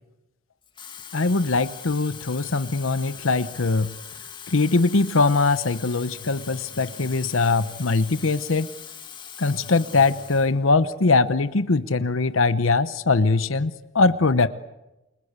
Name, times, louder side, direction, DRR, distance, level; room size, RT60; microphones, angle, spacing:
Water tap faucet / Fill (with liquid), 0.6-10.5 10.9-11.2, left 7 dB, 25° left, 2.0 m, -41 dB
voice 1, 1.1-3.9 4.5-8.7 9.4-14.5, left 3 dB, 80° left, 13 dB, 0.9 m, -21 dB
29.0 x 22.0 x 8.2 m, 0.98 s
head